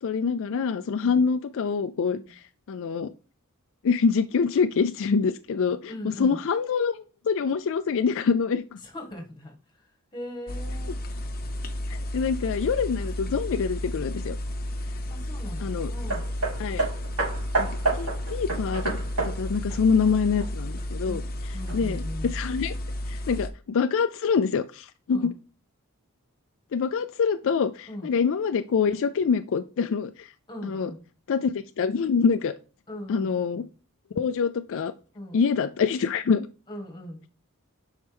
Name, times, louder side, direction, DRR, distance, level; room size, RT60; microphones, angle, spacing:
voice 1, 0.0-3.1 3.8-8.6 11.9-14.4 15.6-15.9 16.6-16.8 17.6-19.0 19.2-22.7 23.1-25.2 26.7-30.3 30.6-30.9 31.3-32.5 33.1-33.6 34.2-34.9 35.3-36.5, left 5 dB, 60° left, 10 dB, 0.4 m, -25 dB
voice 2, 5.9-6.4 8.8-11.0 15.1-16.2 21.0-21.3 21.5-22.3 25.1-25.3 27.9-28.2 30.5-31.0 32.9-33.3 33.5-33.6 35.1-35.4 36.7-37.2, left 1 dB, 20° left, 2 dB, 1.8 m, -39 dB
sound 1, 10.5-23.5, left 1 dB, 40° left, 0.8 m, -32 dB
Hammer, 16.1-20.8 21.7-21.8, right 3 dB, 90° right, 3.0 m, -30 dB
7.8 x 5.5 x 3.5 m, 0.36 s
head